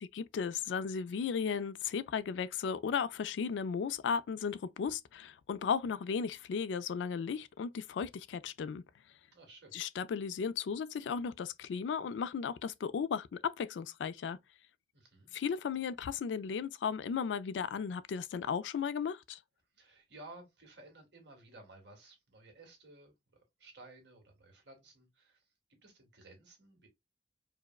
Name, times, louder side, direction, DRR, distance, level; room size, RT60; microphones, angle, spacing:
voice 1, 0.0-8.8 9.7-14.4 15.3-19.4, left 6 dB, 85° left, 0.3 m, -35 dB
voice 2, 9.3-9.8 14.9-15.3 19.8-23.1 23.6-25.4 25.8-26.9, right 2 dB, 75° right, 1.7 m, -55 dB
4.5 x 2.1 x 2.3 m
head